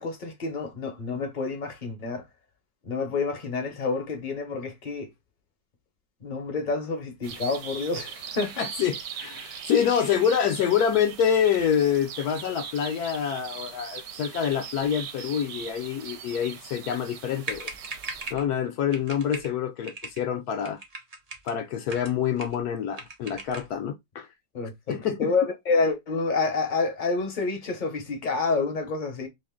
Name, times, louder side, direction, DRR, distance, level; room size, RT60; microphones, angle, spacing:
voice 1, 0.0-2.2 2.8-5.1 6.2-8.7 24.5-29.3, left 4 dB, 40° left, 0.7 m, -28 dB
sound 1, 7.2-18.3, right 7 dB, 80° right, 1.2 m, -40 dB
voice 2, 8.6-17.7 18.3-20.8 21.4-24.3 24.9-25.3, left 8 dB, 70° left, 1.0 m, -26 dB
sound 2, 17.4-18.5 18.9-19.5 19.8-20.2 20.6-21.5 21.9-22.6 22.9-23.7, right 3 dB, 65° right, 0.3 m, -39 dB
3.0 x 2.5 x 3.5 m
omnidirectional pair, 1.9 m